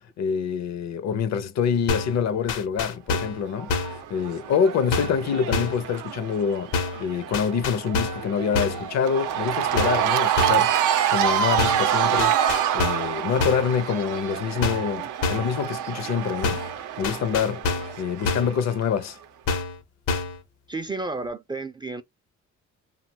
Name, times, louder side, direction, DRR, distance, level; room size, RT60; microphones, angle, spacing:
voice 1, 0.2-12.4 12.7-16.6 17.0-17.7 18.0-19.2, left 7 dB, 60° left, 0.6 m, -26 dB
sound 1, 1.9-2.2 2.5-3.4 3.7-4.0 4.9-5.2 5.5-5.8 6.7-7.1 7.3-8.3 8.5-8.9 9.8-10.1 10.4-10.7 11.6-11.9 12.2-13.1 13.4-13.7 14.6-14.9 15.2-15.6 16.4-16.8 17.0-18.0 18.3-18.6 19.5-19.8 20.1-20.4, left 3 dB, 85° left, 0.9 m, -27 dB
Cheering / Crowd, 3.5-18.8, right 10 dB, 85° right, 0.5 m, -27 dB
voice 2, 20.7-22.0, right 3 dB, 15° right, 0.3 m, -31 dB
2.8 x 2.3 x 2.6 m
cardioid pair, 90°, 30 cm